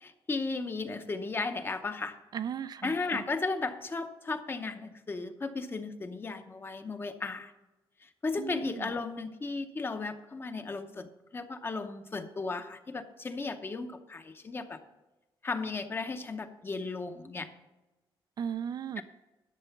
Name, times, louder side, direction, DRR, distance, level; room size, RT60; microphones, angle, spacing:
voice 1, 0.0-2.2 2.8-7.5 8.0-14.8 15.4-17.5 19.0-19.1, left 3 dB, 25° left, 8 dB, 0.7 m, -35 dB
voice 2, 2.3-3.2 8.4-8.9 18.4-19.0, right 8 dB, 45° right, 13 dB, 0.3 m, -36 dB
11.5 x 6.8 x 5.8 m, 1.1 s
wide cardioid pair, 180°, 9 cm